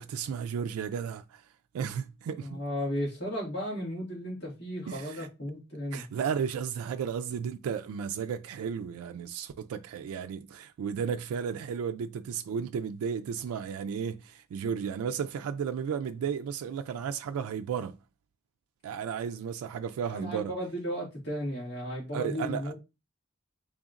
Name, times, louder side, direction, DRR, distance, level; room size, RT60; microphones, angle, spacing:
voice 1, 0.0-1.4 1.7-2.6 4.9-5.3 5.9-18.0 18.8-20.5 22.1-22.7, right 7 dB, 90° right, 0.3 m, -34 dB
voice 2, 2.4-6.0 20.1-22.7, equal, 50° left, 1.9 m, -34 dB
3.9 x 3.4 x 2.4 m
head